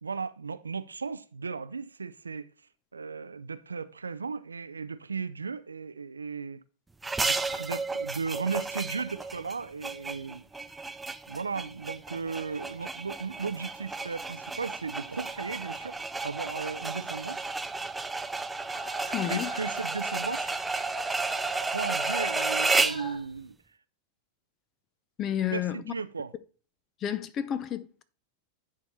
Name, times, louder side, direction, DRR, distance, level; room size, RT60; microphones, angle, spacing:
voice 1, 0.0-2.5 2.9-6.6 7.2-10.4 11.3-17.4 19.3-20.5 21.7-23.5 25.5-26.3, right 5 dB, 75° right, 0.4 m, -36 dB
sound 1, 7.0-23.1, right 3 dB, 10° right, 0.4 m, -32 dB
sound 2, 13.0-23.2, equal, 65° left, 2.7 m, -45 dB
voice 2, 19.1-19.5 25.2-25.9 27.0-28.0, left 10 dB, 30° left, 0.7 m, -31 dB
9.7 x 4.7 x 4.2 m
figure-of-eight pair, 90°, 0 cm